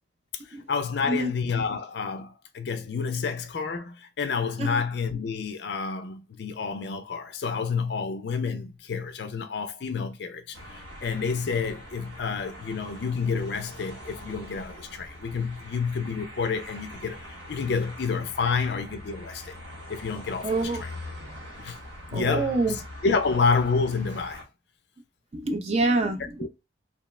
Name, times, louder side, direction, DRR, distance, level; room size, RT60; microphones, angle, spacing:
voice 1, 0.7-19.5 19.9-20.5 20.8-20.9 21.6-21.8 22.1-22.8 23.0-24.4 26.4-26.5, left 5 dB, 55° left, 0.4 m, -29 dB
sound 1, 10.5-24.4, left 1 dB, 70° right, 0.9 m, -43 dB
voice 2, 20.4-20.8 22.1-22.8 25.3-26.5, right 2 dB, 30° right, 0.4 m, -26 dB
3.0 x 2.0 x 3.1 m
head